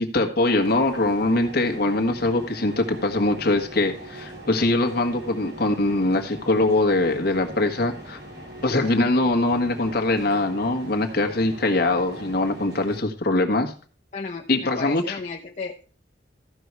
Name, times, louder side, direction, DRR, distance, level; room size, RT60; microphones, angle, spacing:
voice 1, 0.0-8.2 8.6-13.7 14.5-15.2, left 2 dB, 60° left, 4 dB, 1.6 m, -22 dB
sound 1, 0.6-13.0, right 1 dB, 60° right, 2.8 m, -41 dB
voice 2, 14.1-15.9, left 4 dB, 40° left, 0 dB, 0.8 m, -34 dB
14.5 x 5.5 x 4.7 m, 0.39 s
head